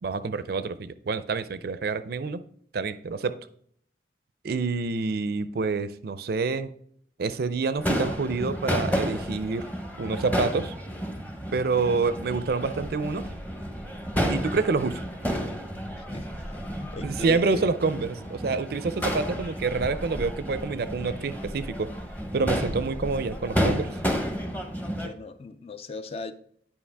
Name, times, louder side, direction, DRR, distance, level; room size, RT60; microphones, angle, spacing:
voice 1, 0.0-2.4 2.7-3.4 4.4-6.7 7.2-9.7 10.0-10.7 11.5-13.3 14.3-15.0 17.0-21.9 22.3-23.9, right 4 dB, 60° right, 0.5 m, -27 dB
Crowd / Fireworks, 7.8-25.1, equal, 10° left, 0.8 m, -31 dB
voice 2, 16.0-17.7 25.0-26.3, left 2 dB, 35° left, 0.4 m, -38 dB
9.8 x 5.2 x 3.4 m
head